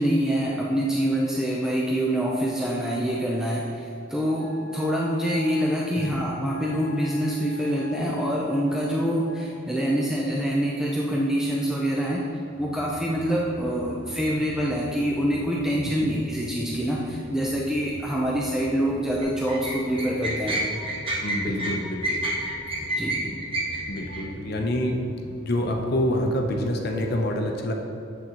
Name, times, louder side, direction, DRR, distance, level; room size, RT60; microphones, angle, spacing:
voice 1, 0.0-12.2 12.6-20.6 21.4-21.7 23.0-23.3, equal, 5° right, -4 dB, 0.5 m, -25 dB
Wind instrument woodwind instrument, 4.3-9.6, left 2 dB, 80° right, 1.0 m, -44 dB
sound 1, 12.5-27.0, equal, 60° right, 1.4 m, -43 dB
sound 2, 19.2-24.2, right 1 dB, 30° right, 0.9 m, -29 dB
voice 2, 21.2-22.2 23.9-25.0 25.4-27.7, left 1 dB, 55° left, 2 dB, 0.7 m, -27 dB
7.6 x 6.3 x 2.9 m, 2.8 s
head